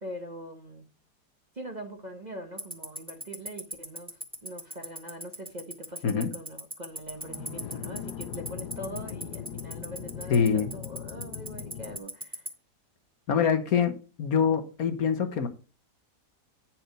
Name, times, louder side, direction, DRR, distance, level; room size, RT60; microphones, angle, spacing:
voice 1, 0.0-0.9 1.5-12.5, right 1 dB, 30° right, 1.0 m, -42 dB
Tick-tock, 2.6-12.5, right 1 dB, 5° right, 1.6 m, -35 dB
sound 1, 7.1-12.0, left 10 dB, 80° left, 1.2 m, -40 dB
voice 2, 10.3-10.7 13.3-15.5, left 7 dB, 65° left, 1.5 m, -25 dB
9.7 x 4.5 x 5.1 m
omnidirectional pair, 1.7 m